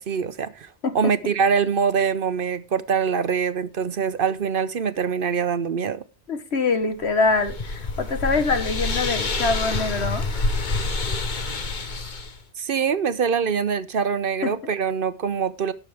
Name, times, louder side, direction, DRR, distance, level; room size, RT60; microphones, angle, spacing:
voice 1, 0.0-6.0 12.6-15.7, right 6 dB, 55° right, 0.9 m, -24 dB
voice 2, 6.3-10.3 14.4-14.5, left 3 dB, 75° left, 1.8 m, -24 dB
sound 1, 7.0-12.4, left 3 dB, 45° left, 1.2 m, -27 dB
19.5 x 6.9 x 3.4 m
omnidirectional pair, 1.1 m